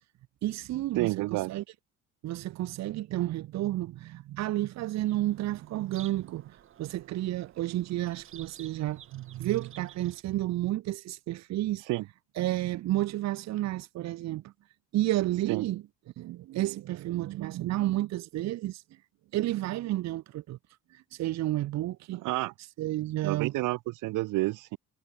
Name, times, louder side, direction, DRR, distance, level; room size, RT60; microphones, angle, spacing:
voice 1, 0.4-1.6 2.2-11.9 12.4-14.5 14.9-15.8 16.2-19.0 19.3-20.6 20.9-22.2 22.8-23.5, right 15 dB, 60° right, 1.6 m, -31 dB
voice 2, 1.0-1.5 11.9-12.0 15.5-15.6 22.1-22.5 23.2-24.8, right 19 dB, 85° right, 2.2 m, -29 dB
Bird vocalization bird call bird song, 4.8-10.2, right 10 dB, 40° right, 4.5 m, -53 dB
cardioid pair, 165°, 31 cm